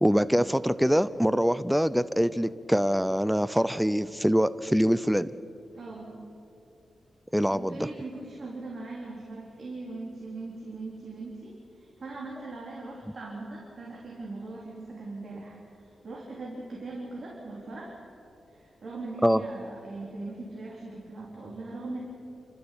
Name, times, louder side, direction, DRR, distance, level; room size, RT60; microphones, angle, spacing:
voice 1, 0.0-5.3 7.3-7.9 19.2-19.4, equal, ahead, 14 dB, 0.6 m, -24 dB
voice 2, 5.7-6.1 7.5-17.9 18.5-22.0, right 2 dB, 50° right, -4 dB, 4.1 m, -40 dB
28.5 x 13.5 x 8.7 m, 2.7 s
wide cardioid pair, 110°, 0 cm